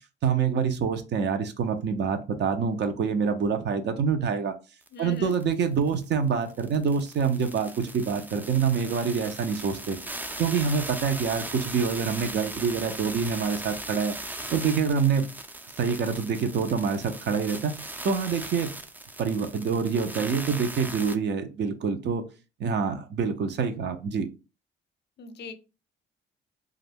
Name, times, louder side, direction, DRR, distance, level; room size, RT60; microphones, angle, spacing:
voice 1, 0.2-4.5 5.0-10.0 10.4-14.1 14.5-15.3 15.8-17.7 18.0-18.7 19.2-22.2 22.6-24.3, right 6 dB, 60° right, 0.6 m, -26 dB
voice 2, 4.9-5.3 25.2-25.5, left 3 dB, 55° left, 0.6 m, -40 dB
sound 1, 4.9-5.0 5.2-21.2, right 2 dB, 10° right, 0.3 m, -39 dB
2.3 x 2.1 x 3.4 m
cardioid pair, 90°, 20 cm